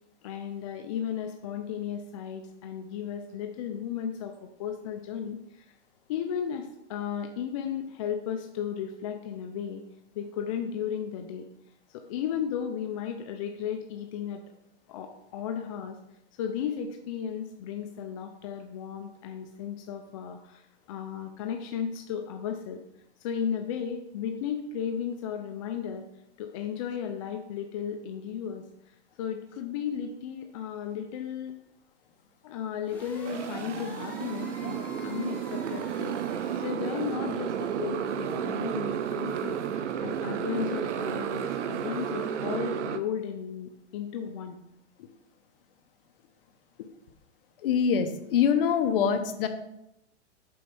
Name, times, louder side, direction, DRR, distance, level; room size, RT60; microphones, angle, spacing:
voice 1, 0.2-5.7 6.1-9.8 10.1-11.5 11.9-14.4 14.9-16.0 16.4-22.8 23.2-26.1 26.4-31.6 32.4-44.6 45.0-45.1 46.8-46.9, left 8 dB, 30° left, 5 dB, 0.5 m, -35 dB
sound 1, 32.8-36.6, left 1 dB, 5° left, 1.5 m, -45 dB
Motorcycle, 33.3-43.0, right 8 dB, 80° right, 0.8 m, -32 dB
voice 2, 47.6-49.5, left 7 dB, 50° left, 8 dB, 1.0 m, -24 dB
7.7 x 4.4 x 5.3 m, 0.82 s
hypercardioid pair, 155°, 35 cm